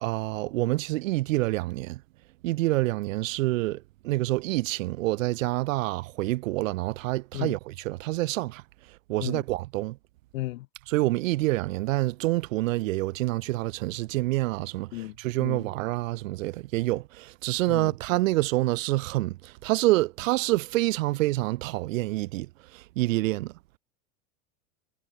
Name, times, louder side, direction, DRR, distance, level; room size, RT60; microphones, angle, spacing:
voice 1, 0.0-2.0 2.4-8.6 9.1-10.0 10.9-23.5, right 19 dB, 80° right, 1.0 m, -27 dB
voice 2, 10.3-10.7 14.9-15.7 17.7-17.9, left 18 dB, 90° left, 0.9 m, -34 dB
supercardioid pair, 145°, 39 cm